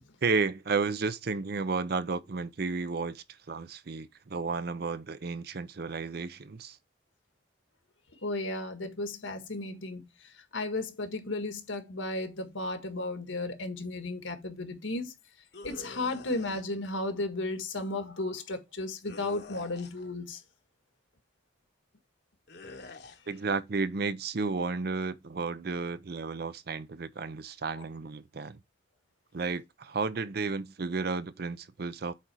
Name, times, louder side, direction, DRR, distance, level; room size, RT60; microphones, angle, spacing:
voice 1, 0.2-6.8 23.3-28.6 29.3-32.1, right 4 dB, 55° right, 0.5 m, -32 dB
voice 2, 8.2-10.1 10.5-15.1 15.6-20.4, left 2 dB, 85° left, 1.6 m, -34 dB
sound 1, 15.5-16.6 19.0-20.1 22.5-23.2, left 2 dB, 55° left, 1.0 m, -46 dB
8.3 x 3.9 x 4.8 m
head